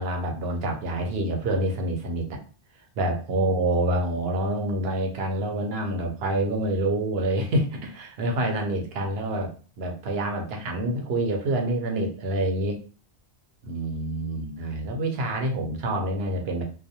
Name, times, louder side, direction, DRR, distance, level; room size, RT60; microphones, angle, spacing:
voice 1, 0.0-2.3 3.0-9.5 9.8-12.8 13.6-16.6, right 1 dB, 75° right, 2 dB, 0.9 m, -27 dB
2.3 x 2.0 x 2.7 m, 0.38 s
omnidirectional pair, 1.1 m